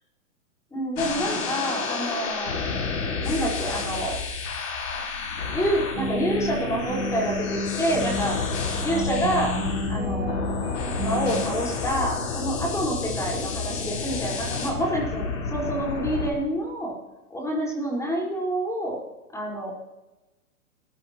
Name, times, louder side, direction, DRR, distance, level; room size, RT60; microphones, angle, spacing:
voice 1, 0.7-2.6 3.2-4.1 5.5-8.3 8.8-9.5 9.9-10.3 11.0-16.9 17.3-19.0 19.3-19.7, right 1 dB, 5° left, -2 dB, 5.2 m, -27 dB
sound 1, 1.0-16.3, left 5 dB, 60° left, 6.2 m, -30 dB
sound 2, 5.9-11.4, equal, 25° right, 7.0 m, -31 dB
27.5 x 14.0 x 3.2 m, 1.0 s
hypercardioid pair, 135°, 44 cm